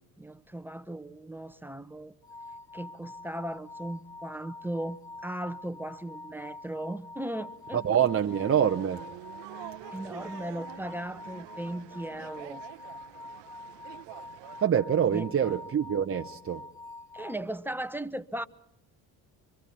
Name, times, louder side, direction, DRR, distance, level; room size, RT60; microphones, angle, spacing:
voice 1, 0.2-2.1 2.7-7.8 9.9-12.6 15.1-15.5 17.1-18.5, right 1 dB, 5° right, 0.9 m, -37 dB
sound 1, 2.2-17.4, left 2 dB, 80° left, 5.0 m, -46 dB
sound 2, 7.3-14.7, right 17 dB, 75° right, 0.9 m, -48 dB
voice 2, 7.7-9.1 14.6-16.7, right 9 dB, 30° right, 0.8 m, -25 dB
25.0 x 25.0 x 4.3 m
supercardioid pair, 75°, 43 cm